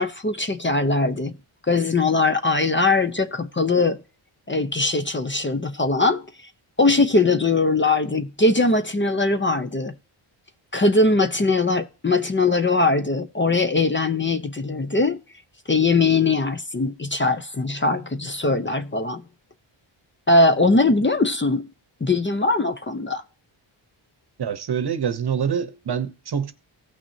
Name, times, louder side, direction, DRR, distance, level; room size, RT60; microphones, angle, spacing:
voice 1, 0.0-1.3 1.7-4.0 4.5-6.2 6.8-9.9 10.7-15.2 15.7-19.2 20.3-21.7 22.0-23.2, left 3 dB, 25° left, 0.7 m, -21 dB
voice 2, 24.4-26.5, right 7 dB, 50° right, 0.9 m, -25 dB
16.5 x 6.0 x 2.7 m
wide cardioid pair, 110°, 49 cm